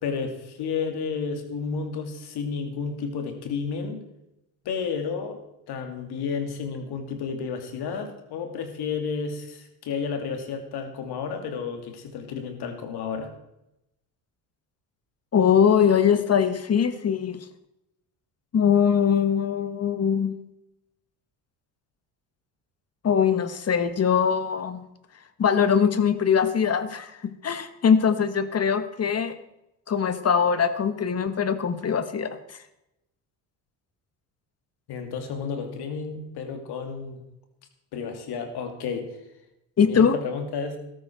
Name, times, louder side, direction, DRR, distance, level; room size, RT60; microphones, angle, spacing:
voice 1, 0.0-4.0 4.6-5.4 5.7-13.3 34.9-37.2 37.9-39.2 39.8-40.8, left 5 dB, 65° left, 6 dB, 2.6 m, -31 dB
voice 2, 15.3-17.4 18.5-20.4 23.0-24.8 25.4-27.1 27.4-29.4 29.9-32.4 39.8-40.2, left 7 dB, 35° left, 12 dB, 1.2 m, -22 dB
13.5 x 12.5 x 4.5 m, 0.88 s
supercardioid pair, 80°, 42 cm